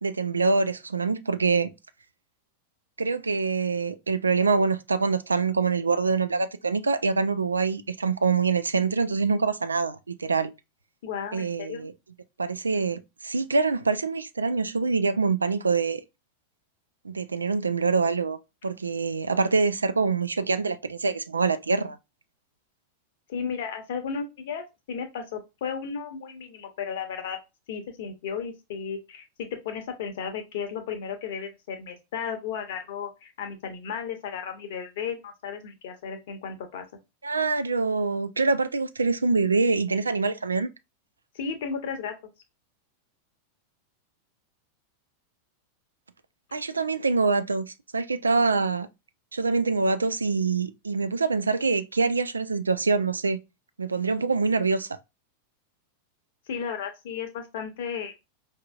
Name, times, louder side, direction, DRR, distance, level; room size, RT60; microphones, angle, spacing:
voice 1, 0.0-1.7 3.0-10.5 11.3-11.9 12.4-16.0 17.0-18.4 18.6-22.0 37.2-40.7 46.5-48.9 49.3-53.4 53.8-55.0, right 4 dB, 75° right, 0.4 m, -25 dB
voice 2, 11.0-11.9 23.3-27.4 27.7-36.8 41.3-42.1 56.5-58.1, left 6 dB, 55° left, 0.8 m, -34 dB
4.7 x 2.7 x 2.3 m
figure-of-eight pair, 90°, 0 cm